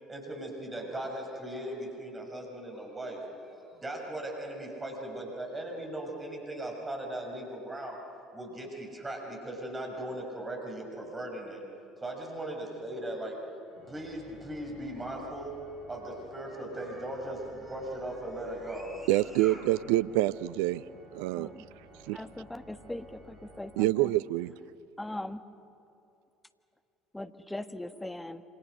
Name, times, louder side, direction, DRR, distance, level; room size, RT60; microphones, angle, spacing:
voice 1, 0.1-8.0 8.3-11.6 12.0-13.4 13.9-15.6 15.9-19.6, right 1 dB, 20° right, 6.2 m, -38 dB
Organ, 13.7-24.5, right 1 dB, 50° right, 5.6 m, -54 dB
voice 2, 19.1-20.8 21.1-21.5 22.1-22.2 23.8-24.5, right 17 dB, 65° right, 0.5 m, -26 dB
voice 3, 21.4-21.7 22.1-24.1 24.5-24.6 25.0-25.4 27.1-28.4, left 1 dB, 10° left, 1.4 m, -40 dB
27.5 x 27.0 x 6.5 m
figure-of-eight pair, 60°, 0 cm